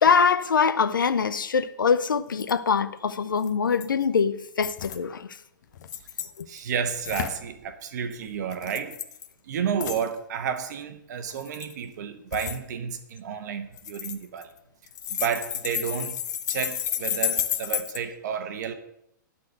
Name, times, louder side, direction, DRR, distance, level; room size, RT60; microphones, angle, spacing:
voice 1, 0.0-5.4 6.4-6.5, left 6 dB, 85° left, 0.6 m, -23 dB
sound 1, 2.0-2.1 2.3-2.5 3.4-4.0 4.6-5.0 5.7-6.6 7.0-7.4 8.5-9.3 9.8-10.1 11.3-11.7 12.3-12.6 13.8-14.6 14.9-18.0, left 11 dB, 60° left, 0.8 m, -31 dB
voice 2, 6.5-9.0 9.5-14.5 15.1-16.2 16.5-18.7, right 7 dB, 60° right, 1.2 m, -31 dB
11.5 x 4.3 x 7.9 m
hypercardioid pair, 120°, 11 cm